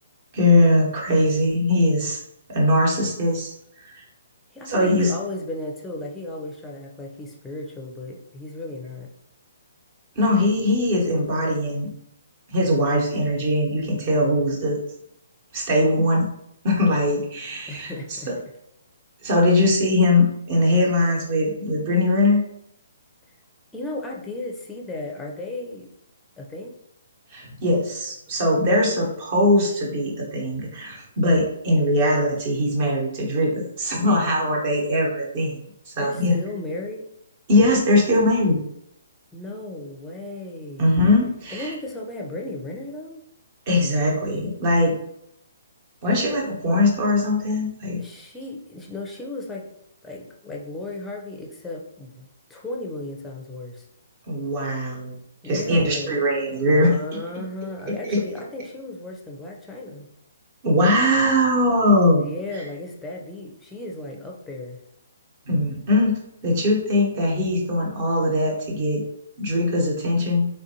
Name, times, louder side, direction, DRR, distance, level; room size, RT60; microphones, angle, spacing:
voice 1, 0.3-2.2 2.5-3.5 3.9-4.0 4.7-5.1 10.2-11.9 12.5-14.8 15.5-16.3 16.6-18.4 19.2-22.4 27.3-35.6 35.9-36.4 37.5-38.6 40.8-41.7 43.7-44.9 46.0-48.0 54.3-55.1 55.4-56.9 57.9-58.2 60.6-62.2 65.5-69.0 69.4-70.5, left 1 dB, 40° right, -2 dB, 1.1 m, -21 dB
voice 2, 4.5-9.1 17.7-18.3 23.7-25.9 26.4-26.7 36.0-37.0 39.3-41.1 41.5-43.2 48.0-49.7 50.0-53.9 55.4-56.2 56.6-60.1 62.2-64.8, left 2 dB, 10° left, 0 dB, 0.5 m, -35 dB
3.4 x 2.5 x 2.8 m, 0.76 s
figure-of-eight pair, 135°, 0 cm